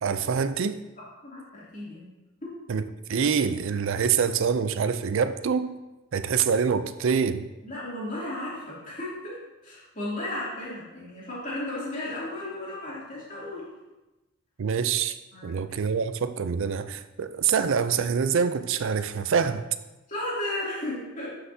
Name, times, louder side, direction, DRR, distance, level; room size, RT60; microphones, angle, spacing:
voice 1, 0.0-0.8 2.7-5.7 6.1-7.5 14.6-15.2 15.4-19.7, right 6 dB, 60° right, 0.4 m, -25 dB
voice 2, 1.0-2.0 2.4-2.6 7.6-13.7 15.3-15.8 20.1-21.3, left 1 dB, 35° left, 2.8 m, -35 dB
11.5 x 5.7 x 2.8 m
head